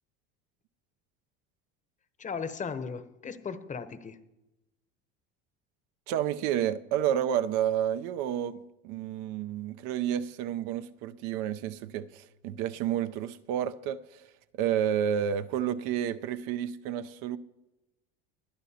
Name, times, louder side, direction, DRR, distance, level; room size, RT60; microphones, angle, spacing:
voice 1, 2.2-4.2, left 5 dB, 25° left, 0.9 m, -37 dB
voice 2, 6.1-17.4, right 10 dB, 70° right, 0.7 m, -30 dB
21.0 x 11.5 x 2.8 m
supercardioid pair, 110°, 32 cm